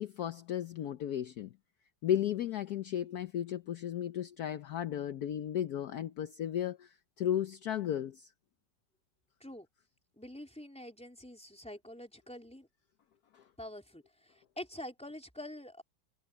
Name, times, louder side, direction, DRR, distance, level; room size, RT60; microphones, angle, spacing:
voice 1, 0.0-1.5 2.0-8.3 13.3-13.4, left 10 dB, 65° left, 1.2 m, -34 dB
voice 2, 10.2-12.7 13.6-15.8, left 1 dB, 5° left, 3.9 m, -46 dB
omnidirectional pair, 1.9 m